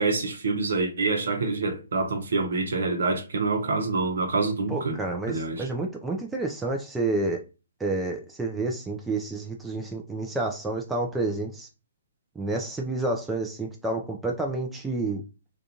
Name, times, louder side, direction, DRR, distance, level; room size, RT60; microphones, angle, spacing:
voice 1, 0.0-5.0 5.3-5.7, right 3 dB, 65° right, 0.8 m, -26 dB
voice 2, 4.7-7.4 7.8-11.7 12.4-15.2, right 2 dB, 5° right, 0.4 m, -29 dB
2.4 x 2.3 x 2.7 m
figure-of-eight pair, 130°, 0 cm